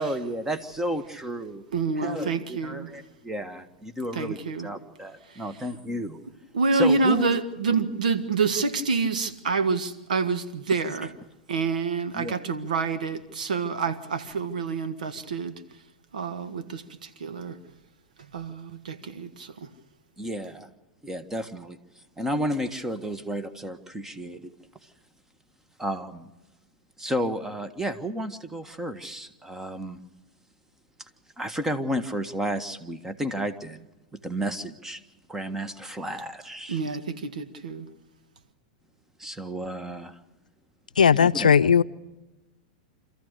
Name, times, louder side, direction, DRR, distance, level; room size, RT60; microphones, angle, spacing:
voice 1, 0.0-1.6 2.0-6.2 6.7-7.4 12.1-12.4 20.2-20.7 21.0-21.8 22.2-24.5 25.8-26.3 27.0-30.0 31.4-33.9 34.1-35.0 35.3-36.8 39.2-40.2 41.2-41.5, equal, 10° right, 1.5 m, -32 dB
voice 2, 1.7-2.9 4.1-4.7 5.3-5.4 6.5-11.1 11.5-15.6 16.1-17.6 18.3-19.7 36.7-37.9, right 4 dB, 75° right, 1.6 m, -27 dB
voice 3, 41.0-41.8, left 7 dB, 85° left, 0.6 m, -17 dB
27.0 x 14.5 x 6.7 m
hypercardioid pair, 105°, 4 cm